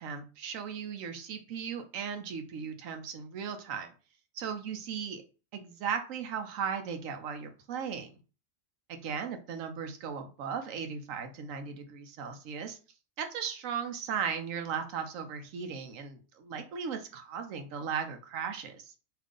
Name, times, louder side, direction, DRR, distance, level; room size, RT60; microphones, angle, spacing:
voice 1, 0.0-3.9 4.3-5.2 5.5-8.1 8.9-12.8 13.2-18.9, right 7 dB, 75° right, 6 dB, 1.0 m, -37 dB
2.8 x 2.5 x 3.6 m, 0.34 s
omnidirectional pair, 1.4 m